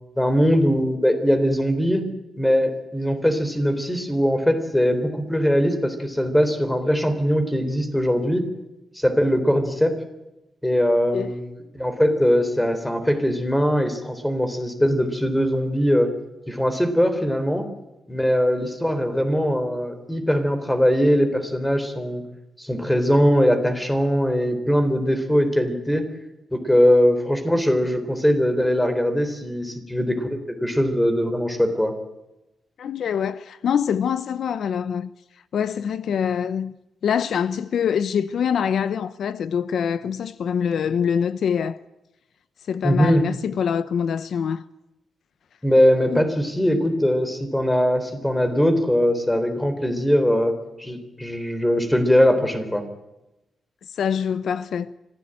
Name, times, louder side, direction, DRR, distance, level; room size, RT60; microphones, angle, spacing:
voice 1, 0.2-2.1 2.4-8.4 9.0-9.9 10.6-16.1 16.5-17.7 18.1-22.2 22.6-26.1 26.5-31.9 42.8-43.2 45.6-50.5 50.8-52.8, equal, 5° left, 3.7 m, -21 dB
voice 2, 32.8-35.1 35.5-36.7 37.0-41.8 42.7-44.6 46.1-46.2 53.8-54.9, left 7 dB, 65° left, 0.8 m, -24 dB
25.0 x 16.5 x 9.0 m
wide cardioid pair, 140°, 0 cm